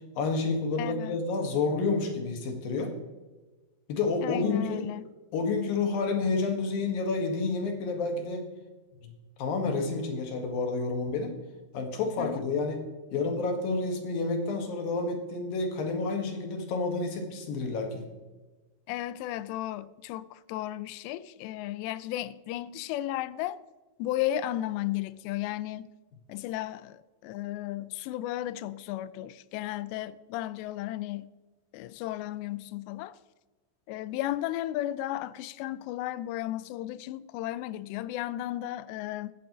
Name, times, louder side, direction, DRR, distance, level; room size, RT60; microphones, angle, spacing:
voice 1, 0.2-2.9 3.9-4.9 5.3-8.5 9.0-9.1 9.4-11.4 11.7-12.8 13.1-18.1, left 3 dB, 60° left, 3.1 m, -29 dB
voice 2, 0.8-1.2 4.2-5.1 12.2-12.4 18.9-23.6 24.0-25.9 26.3-31.3 31.7-33.2 33.9-39.3, left 14 dB, 85° left, 2.8 m, -34 dB
15.5 x 13.0 x 3.1 m
omnidirectional pair, 5.0 m